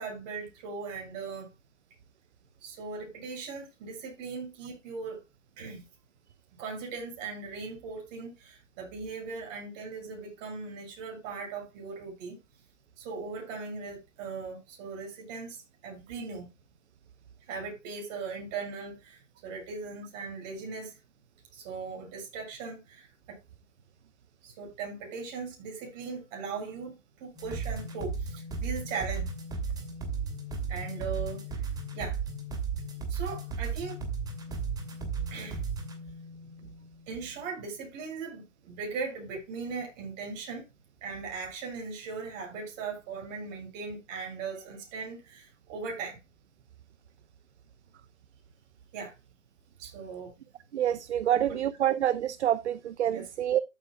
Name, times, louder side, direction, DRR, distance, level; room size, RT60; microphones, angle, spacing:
voice 1, 0.0-1.5 2.6-5.2 5.6-5.8 6.6-12.4 13.0-16.5 17.4-21.0 21.5-23.4 24.4-29.3 30.7-31.4 31.9-32.2 33.1-34.0 35.3-35.6 36.6-36.7 37.1-40.6 41.0-46.2 48.9-49.1 49.8-50.3 50.9-51.0 51.3-51.4 53.1-53.3, right 4 dB, 35° right, 7.2 m, -39 dB
sound 1, 27.3-37.3, right 4 dB, 10° right, 2.4 m, -35 dB
voice 2, 50.7-53.6, right 11 dB, 65° right, 0.7 m, -27 dB
13.5 x 8.4 x 2.3 m
hypercardioid pair, 140°, 37 cm